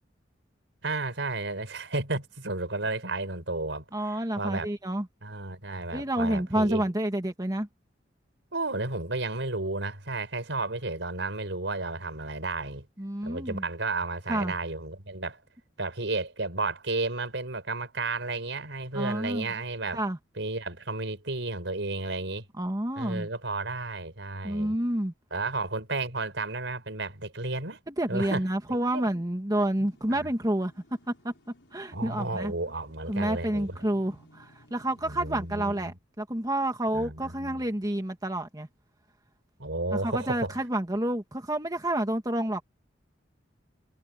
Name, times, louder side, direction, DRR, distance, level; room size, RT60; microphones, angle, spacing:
voice 1, 0.8-4.7 5.2-6.8 8.5-12.9 13.2-15.4 15.8-20.0 20.4-22.5 23.0-24.8 25.3-27.8 28.1-28.4 28.9-29.1 30.1-30.3 31.9-33.8 35.0-35.9 36.9-37.6 39.6-40.5, right 3 dB, 80° right, 4.8 m, -32 dB
voice 2, 3.9-5.1 5.9-7.7 13.0-13.6 14.3-14.6 18.9-19.5 19.9-20.2 22.6-23.3 24.4-25.1 27.9-30.7 31.2-31.3 31.7-32.5 33.1-38.7 39.9-42.6, right 1 dB, 20° right, 1.8 m, -29 dB
sound 1, 29.7-35.8, left 1 dB, 90° left, 5.7 m, -59 dB
head